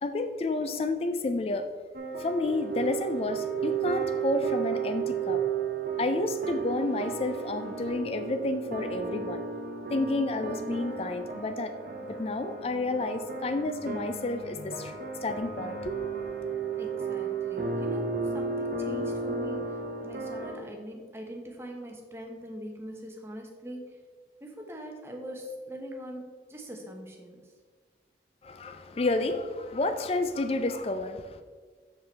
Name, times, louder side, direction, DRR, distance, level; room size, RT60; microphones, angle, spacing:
voice 1, 0.0-1.7 2.2-5.4 6.0-9.4 9.9-11.7 12.1-15.0 15.2-16.0 28.4-31.4, left 2 dB, 35° left, 9 dB, 0.4 m, -30 dB
sound 1, 1.9-20.6, right 5 dB, 50° right, 0.9 m, -33 dB
voice 2, 16.8-24.0 24.4-27.5, equal, 15° right, 1 dB, 0.9 m, -42 dB
6.8 x 5.5 x 4.5 m, 1.5 s
head